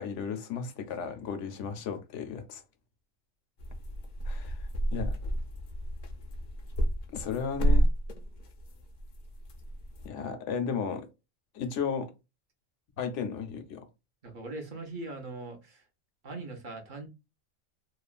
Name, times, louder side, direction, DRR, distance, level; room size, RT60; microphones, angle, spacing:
voice 1, 0.0-2.6 4.2-5.2 7.1-7.9 10.0-11.1 11.5-12.1 13.0-13.9, left 6 dB, 75° left, 0.9 m, -34 dB
sound 1, 3.6-10.1, right 1 dB, 55° left, 0.5 m, -30 dB
voice 2, 14.2-15.8 16.2-17.1, right 2 dB, 45° right, 0.9 m, -40 dB
2.9 x 2.2 x 2.4 m
omnidirectional pair, 1.3 m